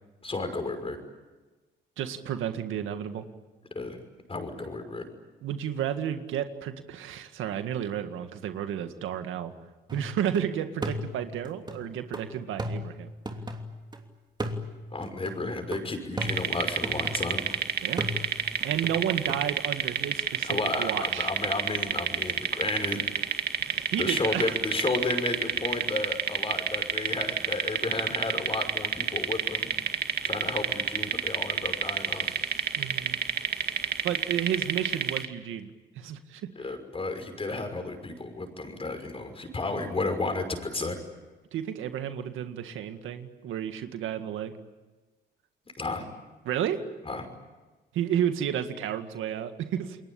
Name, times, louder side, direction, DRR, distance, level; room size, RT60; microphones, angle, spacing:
voice 1, 0.2-1.0 3.7-4.0 4.3-5.0 14.9-17.5 20.4-23.0 24.0-29.7 30.2-32.4 36.6-41.0 45.8-46.1 47.0-47.2, left 3 dB, 30° left, 7 dB, 5.9 m, -32 dB
voice 2, 2.0-3.2 5.4-9.5 9.9-13.1 17.8-18.1 18.6-20.5 20.8-21.3 23.6-24.6 32.8-33.2 34.0-35.7 36.0-36.5 41.5-44.5 46.4-46.8 47.9-50.0, right 9 dB, 85° right, 8 dB, 1.9 m, -32 dB
sound 1, 9.9-10.4 10.8-14.0 14.4-17.6 18.0-19.4, equal, 20° right, 2.9 m, -36 dB
sound 2, 16.2-35.3, right 7 dB, 55° right, 2.0 m, -29 dB
29.0 x 22.0 x 8.7 m, 1.2 s
cardioid pair, 90°, 20 cm